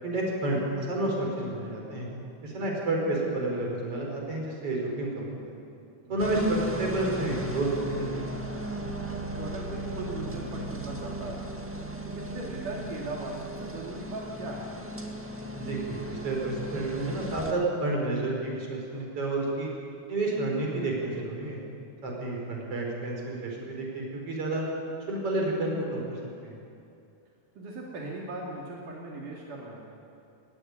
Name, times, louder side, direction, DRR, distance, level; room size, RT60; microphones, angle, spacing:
voice 1, 0.0-2.1 2.4-5.6 6.1-8.5 15.5-19.7 20.1-21.6 22.0-24.7 25.1-26.6, right 2 dB, 45° right, -1 dB, 5.9 m, -30 dB
sound 1, 6.2-17.5, right 1 dB, 10° right, 0.7 m, -37 dB
voice 2, 9.4-11.4 12.0-14.7 22.5-22.7 27.6-29.9, right 2 dB, 80° right, -3 dB, 4.2 m, -38 dB
20.5 x 19.0 x 9.9 m, 2.6 s
omnidirectional pair, 3.6 m